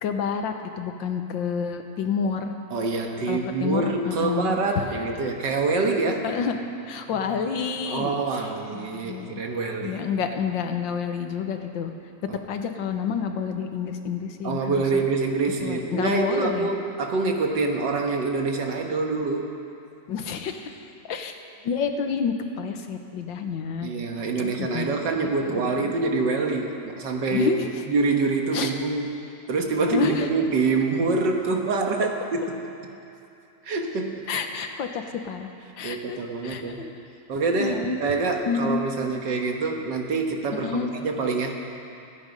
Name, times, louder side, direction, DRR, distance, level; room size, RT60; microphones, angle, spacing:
voice 1, 0.0-2.5 3.3-4.6 6.2-6.6 6.8-9.4 9.8-11.9 12.5-15.0 15.6-16.7 20.1-21.4 21.6-23.9 24.4-24.9 25.2-25.9 27.3-27.7 28.5-28.7 29.9-30.3 34.3-35.5 35.8-36.9 37.6-38.0 38.4-38.8 40.5-40.9, left 6 dB, 85° left, 6 dB, 1.7 m, -29 dB
voice 2, 2.7-6.3 7.9-10.0 12.3-12.4 14.4-19.6 23.8-27.5 27.9-29.1 29.5-32.7 33.7-34.2 35.8-36.8 37.3-41.6, right 3 dB, 70° right, 2 dB, 2.0 m, -26 dB
27.5 x 9.5 x 5.3 m, 2.7 s
omnidirectional pair, 2.0 m